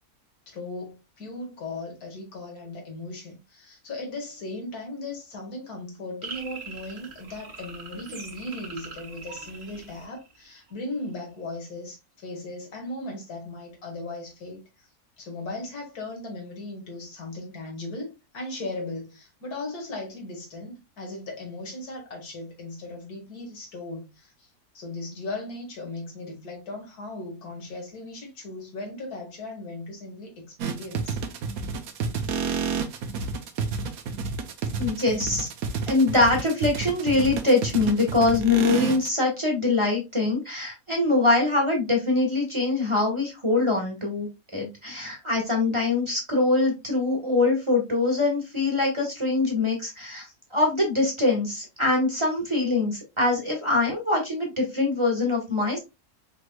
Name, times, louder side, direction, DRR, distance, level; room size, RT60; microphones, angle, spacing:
voice 1, 0.5-14.9 15.2-24.5 24.7-31.2, left 2 dB, 85° left, 2.1 m, -37 dB
sound 1, 6.2-10.7, right 4 dB, 60° right, 1.4 m, -42 dB
sound 2, 30.6-39.1, right 5 dB, 75° right, 1.2 m, -30 dB
voice 2, 34.8-35.5 35.9-44.3 44.5-50.2 50.5-55.8, left 2 dB, 20° right, 1.3 m, -23 dB
5.1 x 3.2 x 2.3 m
omnidirectional pair, 1.6 m